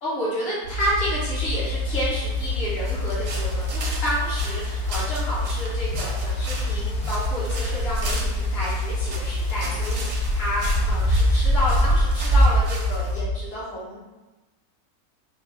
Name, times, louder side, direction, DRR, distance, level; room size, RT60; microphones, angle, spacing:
voice 1, 0.0-14.0, equal, 45° left, -8 dB, 1.3 m, -30 dB
sound 1, 0.6-13.3, left 2 dB, 90° right, 1.1 m, -27 dB
sound 2, 1.0-12.7, right 1 dB, 80° left, 1.2 m, -27 dB
sound 3, 2.8-13.2, right 2 dB, 60° right, 0.8 m, -37 dB
3.7 x 2.0 x 3.4 m, 1.1 s
omnidirectional pair, 1.6 m